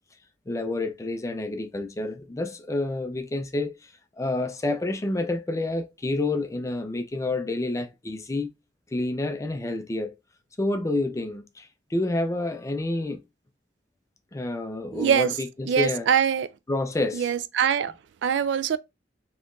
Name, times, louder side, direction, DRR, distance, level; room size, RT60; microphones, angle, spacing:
voice 1, 0.5-8.5 8.9-10.1 10.6-13.2 14.3-16.1 16.7-17.3, left 2 dB, 15° left, 0.4 m, -29 dB
voice 2, 14.9-15.3 15.7-16.5 17.1-17.9 18.2-18.8, right 7 dB, 70° right, 0.3 m, -23 dB
4.2 x 2.9 x 2.5 m
head